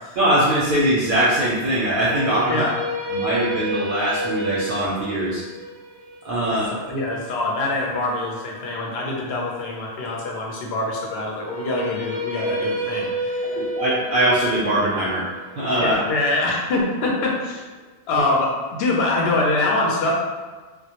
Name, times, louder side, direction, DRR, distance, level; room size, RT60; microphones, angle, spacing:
voice 1, 0.2-2.7 3.1-5.4 6.2-6.6 13.4-15.3 15.6-16.0, right 1 dB, 60° right, -7 dB, 0.6 m, -21 dB
sound 1, 1.9-8.1 11.3-17.4, right 1 dB, 85° right, 0.9 m, -30 dB
voice 2, 6.5-13.6 15.8-17.6 18.1-20.1, left 2 dB, 70° left, -2 dB, 0.8 m, -24 dB
2.1 x 2.0 x 2.8 m, 1.4 s
omnidirectional pair, 1.1 m